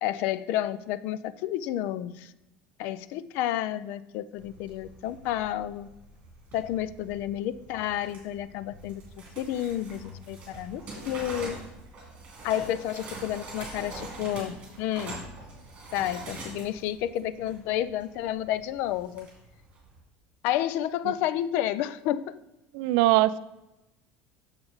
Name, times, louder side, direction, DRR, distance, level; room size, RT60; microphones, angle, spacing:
voice 1, 0.0-2.3 2.8-5.9 6.5-9.0 9.4-11.6 12.4-15.2 15.9-19.3 20.4-22.2, left 12 dB, 55° left, 16 dB, 0.4 m, -30 dB
sound 1, 4.4-20.0, right 2 dB, 30° right, 2.8 m, -44 dB
voice 2, 22.7-23.4, right 17 dB, 70° right, 15 dB, 0.4 m, -21 dB
7.0 x 6.9 x 3.9 m, 0.94 s
cardioid pair, 170°, 4 cm